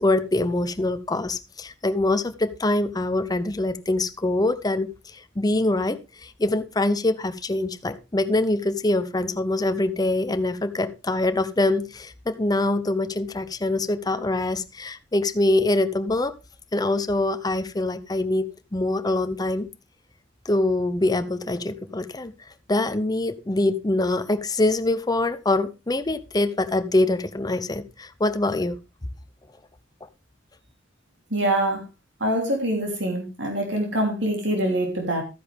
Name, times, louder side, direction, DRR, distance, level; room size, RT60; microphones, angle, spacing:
voice 1, 0.0-16.3 16.7-19.7 20.5-22.3 22.7-28.8, left 2 dB, 20° left, 10 dB, 0.7 m, -24 dB
voice 2, 31.3-31.8 32.2-35.2, right 1 dB, 65° right, 2 dB, 3.2 m, -24 dB
13.0 x 10.0 x 3.5 m, 0.27 s
head